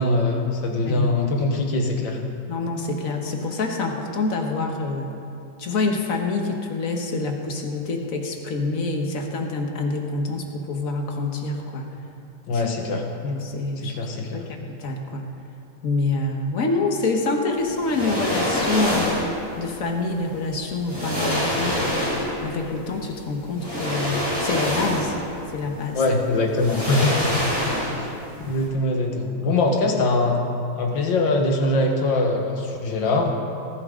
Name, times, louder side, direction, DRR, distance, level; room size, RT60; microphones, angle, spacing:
voice 1, 0.0-2.2 12.5-13.0 13.8-14.4 25.9-27.2 27.9-28.1 28.4-30.4 30.7-33.3, left 2 dB, 70° left, 2 dB, 2.0 m, -22 dB
voice 2, 2.5-5.1 5.6-11.9 12.5-12.6 13.2-14.1 14.3-15.2 15.8-19.2 19.6-21.8 22.4-25.2 25.5-26.0 27.7-27.8, left 3 dB, 45° left, 3 dB, 1.5 m, -26 dB
sound 1, 17.8-19.4 20.4-20.5 20.9-22.5 23.6-25.3 25.6-25.7 26.5-28.2 28.4-28.6, left 1 dB, 10° left, 4.0 m, -25 dB
19.5 x 12.0 x 3.8 m, 2.6 s
omnidirectional pair, 2.2 m